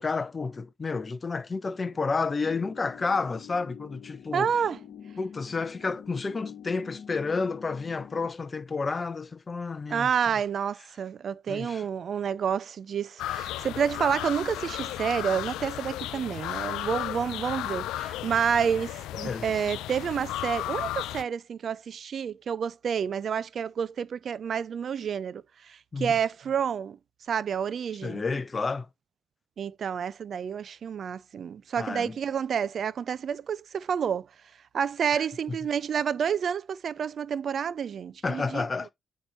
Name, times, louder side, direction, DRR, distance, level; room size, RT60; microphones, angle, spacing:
voice 1, 0.0-4.5 5.2-10.1 11.5-11.9 19.2-19.7 25.9-26.1 28.0-28.9 31.8-32.2 35.1-35.2 38.2-38.9, left 4 dB, 30° left, 0.8 m, -31 dB
sound 1, 2.4-8.3, left 8 dB, 65° left, 1.4 m, -46 dB
voice 2, 4.3-4.8 9.9-27.0 27.3-28.2 29.6-34.3 34.7-38.6, right 7 dB, 55° right, 0.4 m, -29 dB
sound 2, 13.2-21.2, left 14 dB, 90° left, 0.4 m, -34 dB
9.0 x 3.1 x 4.4 m
cardioid pair, 90°, 0 cm